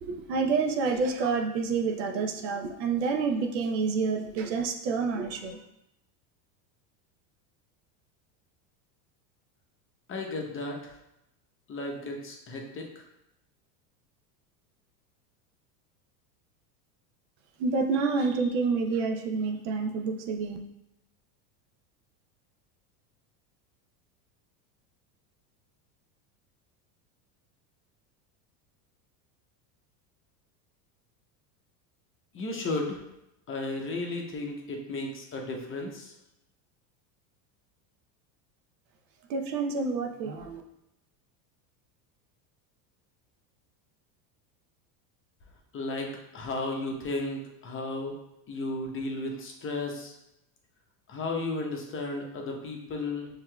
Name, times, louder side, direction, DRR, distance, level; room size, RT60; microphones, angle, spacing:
voice 1, 0.0-5.6 17.6-20.6 39.3-40.6, right 4 dB, 80° right, 4 dB, 0.8 m, -28 dB
voice 2, 10.1-11.0 11.7-13.1 32.3-33.0 33.5-36.1 45.7-48.1 48.5-50.1 51.1-53.3, left 2 dB, 25° left, 1 dB, 0.7 m, -34 dB
5.8 x 2.9 x 2.2 m, 0.85 s
supercardioid pair, 110°, 49 cm